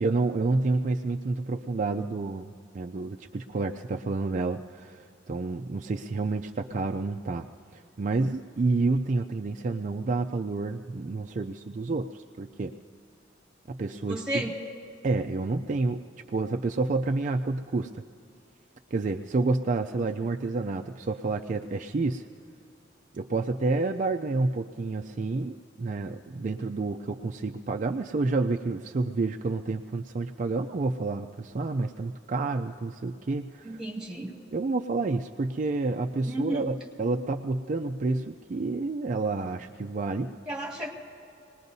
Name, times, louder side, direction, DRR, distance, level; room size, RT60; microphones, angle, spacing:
voice 1, 0.0-7.5 7.7-12.7 13.7-14.4 15.0-16.0 16.3-18.0 18.9-22.3 23.1-33.8 34.5-40.3, right 3 dB, 45° right, 4 dB, 0.4 m, -29 dB
voice 2, 14.1-14.6 33.6-34.3 36.3-36.6 40.5-40.9, right 1 dB, 5° right, -2 dB, 2.4 m, -32 dB
26.5 x 20.0 x 2.7 m, 2.5 s
head